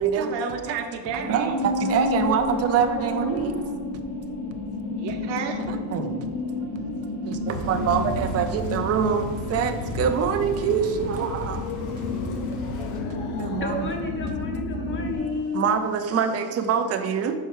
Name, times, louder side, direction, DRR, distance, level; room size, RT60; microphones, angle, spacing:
voice 1, 0.2-1.5 5.0-5.6, right 6 dB, 80° right, 4 dB, 0.9 m, -31 dB
sound 1, 1.2-15.2, left 2 dB, 65° left, 1.5 m, -31 dB
voice 2, 1.3-3.5 5.7-6.1 7.3-11.6 13.4-13.9 15.5-17.3, right 7 dB, 35° right, 7 dB, 0.5 m, -25 dB
Thunder / Rain, 7.5-13.0, left 1 dB, 45° left, 1.0 m, -34 dB
sound 2, 10.3-15.3, left 5 dB, 80° left, 0.8 m, -38 dB
voice 3, 13.6-15.7, left 3 dB, 30° left, 3 dB, 0.7 m, -31 dB
5.6 x 4.6 x 4.7 m, 1.5 s
cardioid pair, 155°, 43 cm